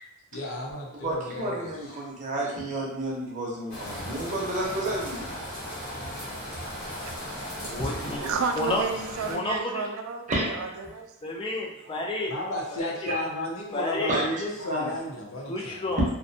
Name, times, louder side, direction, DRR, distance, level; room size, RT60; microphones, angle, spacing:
voice 1, 0.3-2.0 12.3-15.8, left 1 dB, 75° left, -1 dB, 0.6 m, -33 dB
voice 2, 1.0-5.3 7.8-8.3 10.3-10.5 14.1-14.3 14.7-14.9, right 1 dB, 35° right, -3 dB, 0.6 m, -31 dB
sound 1, 3.7-9.3, equal, 40° left, 1.0 m, -37 dB
voice 3, 7.6-8.2 8.5-8.8 9.2-9.8 11.2-12.3 12.7-12.9 13.7-14.2 15.5-16.0, left 2 dB, 25° left, -1 dB, 0.3 m, -30 dB
voice 4, 8.2-11.1, right 5 dB, 80° right, 4 dB, 0.3 m, -31 dB
2.5 x 2.1 x 2.6 m, 0.82 s
head